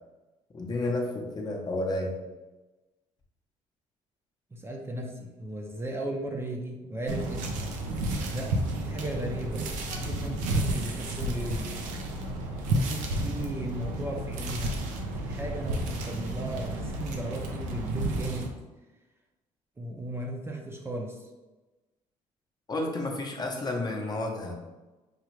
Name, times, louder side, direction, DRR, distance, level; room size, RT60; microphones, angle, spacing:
voice 1, 0.5-2.2 9.9-10.0 22.7-24.5, left 2 dB, 35° left, 0 dB, 0.8 m, -31 dB
voice 2, 4.5-7.6 8.3-9.6 9.9-11.7 12.7-14.8 15.2-18.5 19.8-21.2, right 1 dB, 20° right, 1 dB, 0.6 m, -36 dB
sound 1, 7.1-18.5, right 1 dB, 85° right, 0.6 m, -31 dB
4.9 x 2.4 x 3.1 m, 1.1 s
cardioid pair, 95°, 13 cm